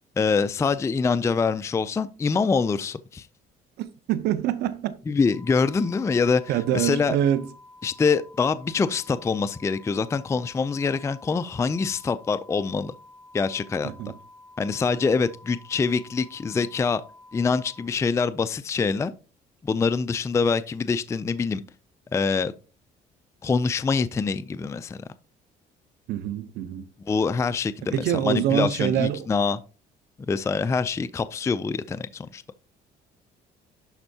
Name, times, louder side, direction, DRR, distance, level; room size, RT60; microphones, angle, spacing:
voice 1, 0.2-3.3 5.1-6.4 6.7-7.2 7.8-12.9 13.3-13.9 14.6-17.0 17.3-19.1 19.6-21.6 22.1-22.5 23.4-25.0 27.1-29.6 30.2-32.4, left 5 dB, 15° left, 0.4 m, -25 dB
voice 2, 3.8-5.0 6.5-7.4 13.8-14.1 26.1-26.9 27.9-29.3, right 11 dB, 80° right, 0.7 m, -25 dB
sound 1, 5.3-17.9, left 2 dB, 10° right, 1.4 m, -50 dB
11.5 x 4.4 x 2.7 m
cardioid pair, 110°, 17 cm